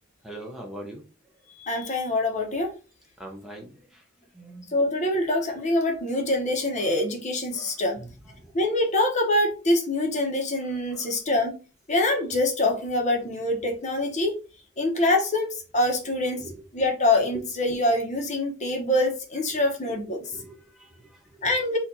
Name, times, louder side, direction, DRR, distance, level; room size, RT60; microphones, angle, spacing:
voice 1, 0.2-1.0 3.2-4.0 4.3-4.7 6.8-6.9 7.5-8.1 8.4-8.5 10.7-11.1 16.4-16.6 20.3-21.6, right 1 dB, ahead, 0 dB, 0.8 m, -43 dB
voice 2, 1.6-2.7 4.7-8.0 8.5-11.5 11.9-14.4 14.8-16.4 16.7-20.2 21.4-21.8, left 1 dB, 35° left, 3 dB, 0.9 m, -25 dB
4.4 x 2.5 x 4.0 m, 0.33 s
head